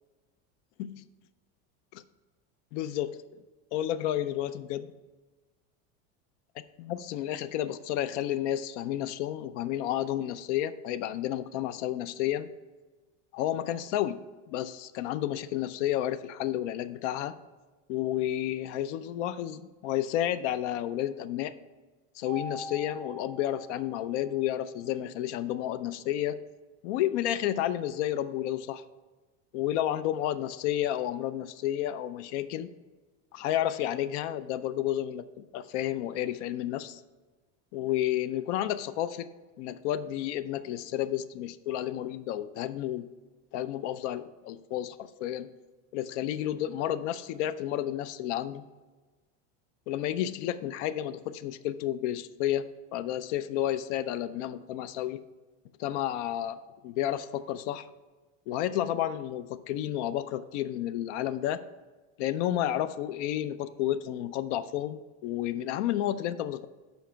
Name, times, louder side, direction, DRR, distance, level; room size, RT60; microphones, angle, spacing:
voice 1, 2.7-3.2 3.7-4.9 6.8-12.5 13.3-14.2 14.5-17.3 17.9-21.5 22.2-26.4 26.8-28.8 29.5-32.7 33.3-37.0 37.7-39.3 39.6-43.1 43.5-45.5 45.9-48.6 49.9-55.2 55.8-57.9 58.5-61.6 62.2-66.7, left 12 dB, 75° left, 13 dB, 0.5 m, -31 dB
Mallet percussion, 22.3-24.5, equal, 5° left, 0.3 m, -43 dB
7.1 x 5.2 x 5.7 m, 1.3 s
cardioid pair, 175°, 36 cm